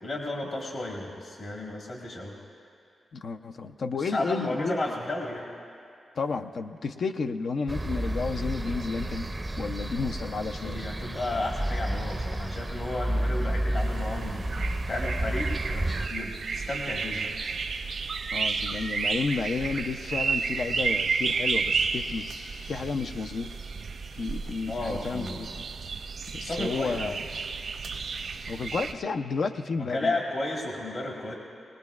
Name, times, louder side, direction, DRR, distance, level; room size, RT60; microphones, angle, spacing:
voice 1, 0.0-2.4 4.0-5.5 10.6-14.5 14.9-17.4 24.7-25.5 26.4-27.0 29.8-31.3, left 2 dB, 55° left, -1 dB, 1.6 m, -33 dB
voice 2, 3.1-4.8 6.2-10.9 18.3-22.3 22.6-23.5 24.1-25.7 26.3-27.2 28.5-30.1, left 4 dB, 70° left, 7 dB, 0.5 m, -32 dB
sound 1, 7.7-16.1, right 1 dB, 20° right, 0.5 m, -31 dB
sound 2, 13.8-28.9, right 5 dB, 75° right, 0.7 m, -32 dB
21.5 x 19.0 x 2.4 m, 2.5 s
cardioid pair, 75°, 0 cm